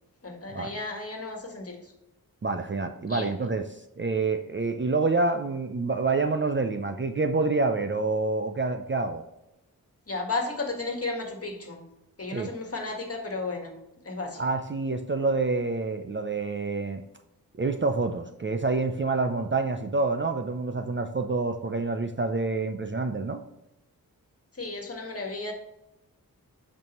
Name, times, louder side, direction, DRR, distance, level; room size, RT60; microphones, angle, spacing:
voice 1, 0.2-1.9 3.1-3.3 10.1-11.8 12.2-13.8 14.0-14.4 24.5-25.5, left 3 dB, 40° left, 2 dB, 1.6 m, -33 dB
voice 2, 2.4-9.2 12.3-12.5 14.4-17.0 17.6-23.4, right 3 dB, 35° right, 7 dB, 0.5 m, -27 dB
8.2 x 5.4 x 3.0 m, 0.89 s
wide cardioid pair, 85°, 35 cm